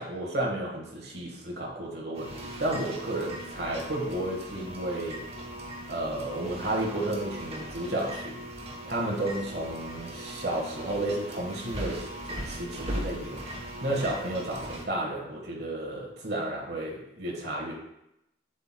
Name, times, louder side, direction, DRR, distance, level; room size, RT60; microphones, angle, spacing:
voice 1, 0.0-5.2 5.9-8.4 8.8-12.1 12.4-13.4 13.8-17.7, right 1 dB, 55° right, -1 dB, 1.5 m, -32 dB
sound 1, 2.1-14.9, right 1 dB, 30° right, 1.0 m, -39 dB
7.9 x 7.8 x 2.2 m, 0.84 s
head